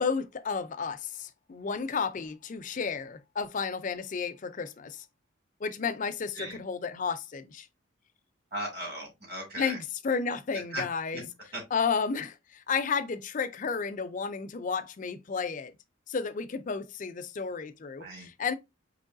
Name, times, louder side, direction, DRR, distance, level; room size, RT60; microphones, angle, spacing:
voice 1, 0.0-5.1 5.6-7.7 9.6-11.3 11.7-15.7 16.1-18.5, left 5 dB, 40° left, 0.4 m, -32 dB
voice 2, 8.5-9.8 10.7-10.8 11.5-11.6 18.0-18.3, right 1 dB, 50° right, 2.2 m, -37 dB
4.6 x 3.0 x 2.5 m
head